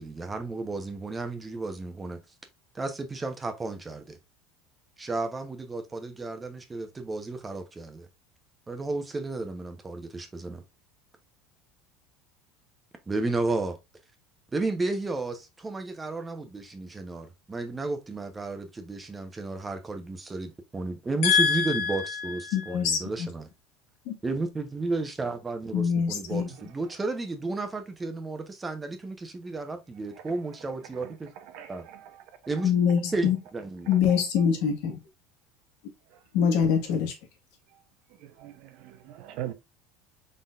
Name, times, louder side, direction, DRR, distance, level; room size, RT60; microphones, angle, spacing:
voice 1, 0.0-2.2 2.7-4.2 5.0-8.1 8.7-10.6 13.1-13.8 14.5-23.5 24.2-31.3 31.7-31.9 32.5-32.7 33.1-33.9, right 3 dB, 15° right, 0.9 m, -33 dB
voice 2, 21.2-23.3 24.0-24.1 25.7-26.5 32.6-33.4 33.9-35.0 36.3-37.1, left 7 dB, 75° left, 1.4 m, -24 dB
voice 3, 38.4-39.5, right 13 dB, 65° right, 0.7 m, -39 dB
4.0 x 3.8 x 2.5 m
supercardioid pair, 115°, 0 cm